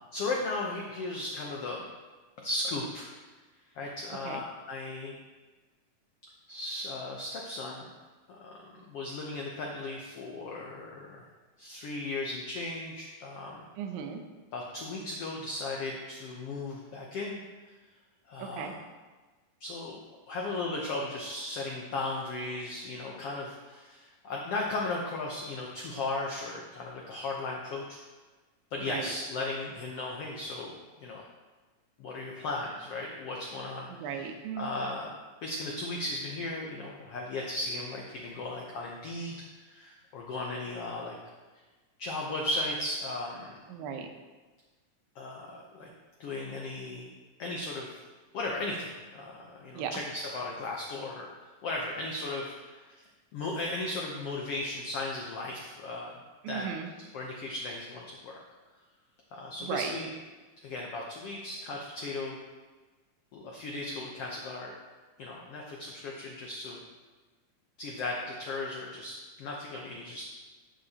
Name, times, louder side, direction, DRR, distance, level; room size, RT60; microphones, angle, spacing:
voice 1, 0.1-1.9 2.4-3.1 3.7-5.1 6.5-7.9 8.3-11.2 11.6-13.6 14.5-17.4 18.3-18.8 19.6-20.0 20.3-27.8 28.7-30.7 31.0-31.2 32.0-33.9 34.6-35.1 35.4-41.2 42.0-43.6 45.1-45.9 46.2-47.1 47.4-48.0 48.3-51.3 51.6-53.0 53.3-56.1 56.5-56.7 57.1-58.4 59.3-60.1 60.6-62.4 63.3-64.7 65.2-66.8 67.8-70.2, left 2 dB, 85° left, -2 dB, 1.3 m, -36 dB
voice 2, 13.8-14.2 18.4-18.7 28.9-29.1 33.9-34.7 43.7-44.1 49.7-49.9 56.4-56.9 59.6-59.9, right 7 dB, 85° right, 5 dB, 2.6 m, -36 dB
11.0 x 7.6 x 2.9 m, 1.3 s
omnidirectional pair, 4.0 m